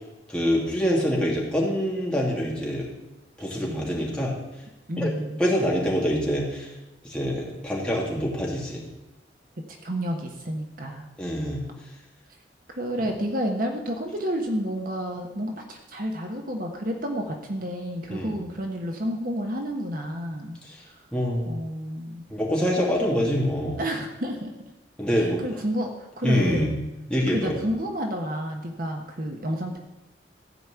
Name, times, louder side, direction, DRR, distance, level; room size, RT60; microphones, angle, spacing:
voice 1, 0.3-2.9 3.4-4.4 5.0-5.1 5.4-6.7 7.0-8.8 11.2-11.6 18.1-18.4 20.6-20.8 21.1-21.5 22.3-23.8 25.0-25.4 26.2-26.8 27.1-27.6, equal, 5° left, -4 dB, 2.7 m, -25 dB
voice 2, 4.9-5.4 9.8-11.1 12.7-20.6 21.5-22.3 23.8-24.5 25.2-26.7 27.3-29.8, equal, 50° right, 3 dB, 1.3 m, -30 dB
14.5 x 5.3 x 8.4 m, 0.97 s
head